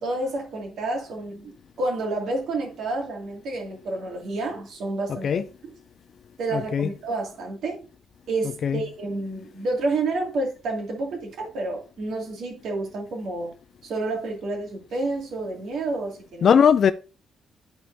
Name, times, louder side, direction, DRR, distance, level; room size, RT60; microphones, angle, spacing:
voice 1, 0.0-1.5 1.8-5.4 6.4-7.9 8.3-13.5 13.8-16.6, right 2 dB, 70° right, 2.3 m, -29 dB
voice 2, 6.5-6.9 8.6-8.8 16.4-16.9, left 7 dB, 55° left, 0.3 m, -19 dB
12.0 x 4.5 x 2.7 m
cardioid pair, 90°, 0 cm